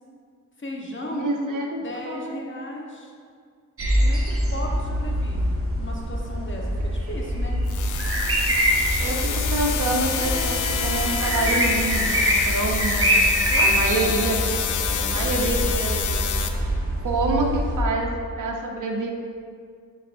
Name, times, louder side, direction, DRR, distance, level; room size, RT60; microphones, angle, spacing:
voice 1, 0.6-1.3 1.8-3.1 4.0-7.6 13.5-14.3 14.9-15.5, left 1 dB, 35° left, -1 dB, 1.2 m, -36 dB
voice 2, 1.1-2.4 9.0-13.1 13.6-14.5 15.0-16.3 17.0-18.1 18.4-19.1, right 2 dB, 70° right, 0 dB, 0.8 m, -27 dB
sound 1, 3.8-17.8, equal, 45° right, 1.1 m, -24 dB
sound 2, 7.7-16.5, left 8 dB, 65° left, 0.5 m, -28 dB
Bowed string instrument, 10.1-14.0, left 3 dB, 15° left, 0.6 m, -37 dB
9.3 x 4.0 x 2.6 m, 2.2 s
cardioid pair, 45°, 32 cm